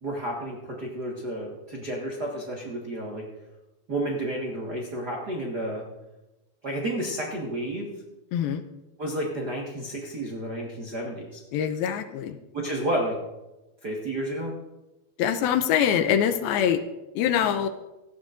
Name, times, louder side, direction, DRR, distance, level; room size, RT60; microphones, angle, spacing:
voice 1, 0.0-3.3 3.9-5.9 6.6-8.0 9.0-11.4 12.5-13.2 13.8-14.5, right 1 dB, 85° right, -3 dB, 0.8 m, -31 dB
voice 2, 8.3-8.6 11.5-12.4 15.2-16.8 17.2-17.7, left 9 dB, 80° left, 9 dB, 2.5 m, -24 dB
17.5 x 13.5 x 2.5 m, 1.0 s
omnidirectional pair, 4.5 m